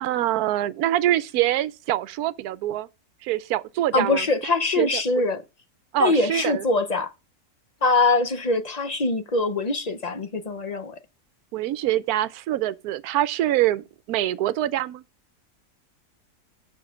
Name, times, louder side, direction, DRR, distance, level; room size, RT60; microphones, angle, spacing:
voice 1, 0.0-2.9 3.2-4.3 4.8-5.2 5.9-6.6 11.5-15.0, right 13 dB, 75° right, 1.1 m, -25 dB
voice 2, 3.9-5.4 6.0-7.1 7.8-11.0, left 3 dB, 40° left, 0.5 m, -23 dB
6.8 x 5.7 x 6.2 m
omnidirectional pair, 1.6 m